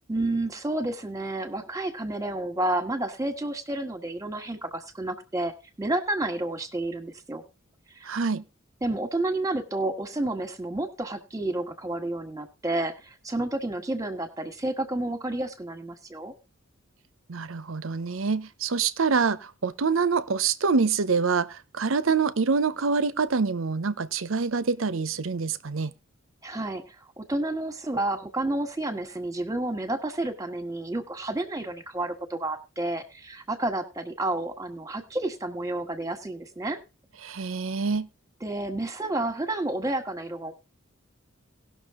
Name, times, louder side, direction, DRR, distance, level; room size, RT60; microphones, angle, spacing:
voice 1, 0.1-5.5 5.8-7.4 7.9-8.1 8.8-16.3 26.4-36.8 38.4-40.5, right 2 dB, 15° right, 1.4 m, -30 dB
voice 2, 8.0-8.4 17.3-25.9 37.2-38.1, right 5 dB, 75° right, 0.7 m, -26 dB
18.0 x 6.3 x 3.7 m
head